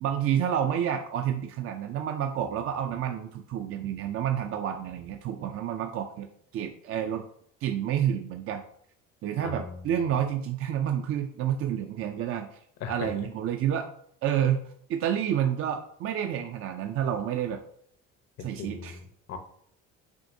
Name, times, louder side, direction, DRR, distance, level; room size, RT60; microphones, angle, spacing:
voice 1, 0.0-6.3 6.5-7.2 7.6-8.6 9.2-12.6 12.9-13.9 14.2-17.6 18.4-19.0, right 9 dB, 50° right, 4 dB, 0.4 m, -29 dB
voice 2, 9.4-9.8 12.8-13.3 18.6-19.4, left 5 dB, 60° left, 6 dB, 0.7 m, -38 dB
6.1 x 2.7 x 2.6 m, 0.65 s
cardioid pair, 100°, 30 cm